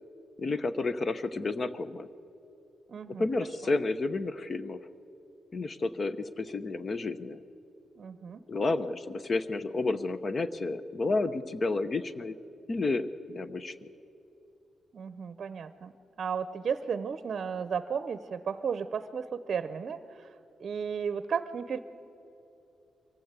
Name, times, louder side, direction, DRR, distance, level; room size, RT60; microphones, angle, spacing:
voice 1, 0.4-2.1 3.2-4.8 5.5-7.4 8.5-12.3 12.7-13.9, left 3 dB, 35° left, 11 dB, 0.9 m, -31 dB
voice 2, 2.9-3.3 8.0-8.4 14.9-20.3 20.6-21.8, right 6 dB, 50° right, 11 dB, 0.7 m, -34 dB
24.0 x 15.5 x 8.2 m, 2.9 s
cardioid pair, 115°, 0 cm